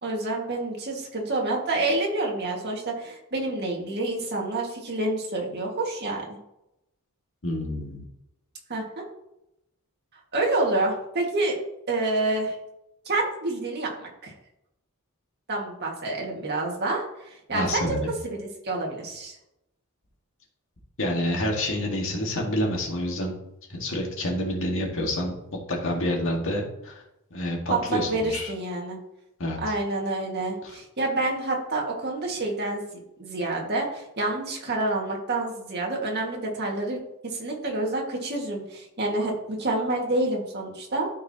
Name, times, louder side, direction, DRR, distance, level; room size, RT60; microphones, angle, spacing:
voice 1, 0.0-6.4 8.7-9.0 10.3-11.6 11.9-12.6 13.1-14.3 15.5-19.4 27.7-29.0 29.6-32.8 33.2-41.1, right 2 dB, 50° right, -1 dB, 1.9 m, -28 dB
voice 2, 7.4-8.0 17.5-18.1 21.0-23.3 23.7-25.3 25.7-27.0 27.3-28.5 29.4-29.6, left 1 dB, 65° left, -1 dB, 2.0 m, -28 dB
12.5 x 4.7 x 2.9 m, 0.85 s
head